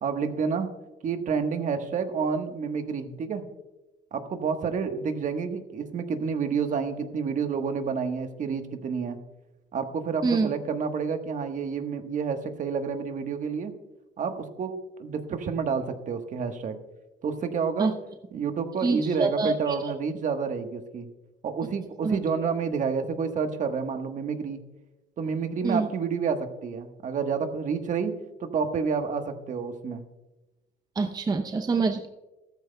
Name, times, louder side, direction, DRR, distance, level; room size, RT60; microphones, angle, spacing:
voice 1, 0.0-0.7 1.0-3.4 4.1-9.2 9.7-13.7 14.2-14.7 15.0-16.8 17.2-17.9 18.3-21.1 21.4-24.6 25.2-28.1 28.4-30.0, right 5 dB, 50° right, 7 dB, 1.3 m, -29 dB
voice 2, 18.8-19.9 22.0-22.2 25.6-25.9 31.0-32.1, right 4 dB, 25° right, 5 dB, 0.7 m, -26 dB
15.0 x 13.5 x 2.3 m, 1.1 s
cardioid pair, 110°, 17 cm